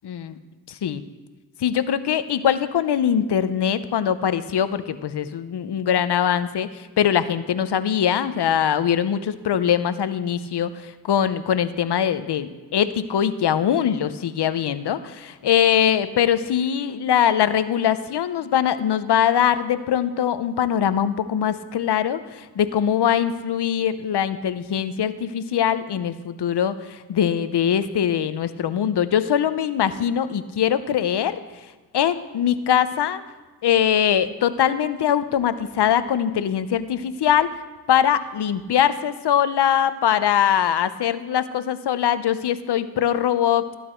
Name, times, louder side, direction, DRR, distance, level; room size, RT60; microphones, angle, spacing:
voice 1, 0.1-0.4 0.7-1.0 1.6-31.4 31.9-33.2 33.6-37.5 37.9-43.7, left 9 dB, 75° left, 13 dB, 0.7 m, -22 dB
14.5 x 8.2 x 4.5 m, 1.3 s
cardioid pair, 45°, 40 cm